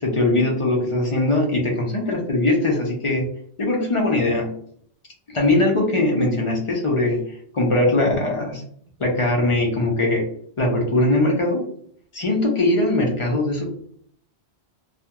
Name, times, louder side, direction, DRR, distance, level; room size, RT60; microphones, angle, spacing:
voice 1, 0.0-3.2 3.6-4.5 5.3-8.6 9.0-10.3 10.6-11.6 12.1-13.6, left 2 dB, 45° left, 0 dB, 0.4 m, -21 dB
2.4 x 2.2 x 2.8 m, 0.64 s
omnidirectional pair, 1.2 m